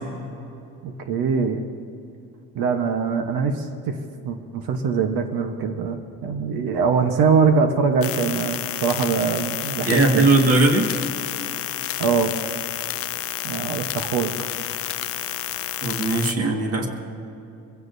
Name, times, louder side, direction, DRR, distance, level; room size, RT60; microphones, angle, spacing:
voice 1, 0.8-1.6 2.5-4.0 4.2-10.3 12.0-12.3 13.4-14.5, right 5 dB, 85° right, 5 dB, 1.2 m, -23 dB
sound 1, 8.0-16.3, left 12 dB, 40° left, 0.4 m, -30 dB
voice 2, 9.8-10.9 15.8-16.9, right 2 dB, 40° right, 2 dB, 1.9 m, -19 dB
24.5 x 16.0 x 2.7 m, 2.8 s
cardioid pair, 170°, 35 cm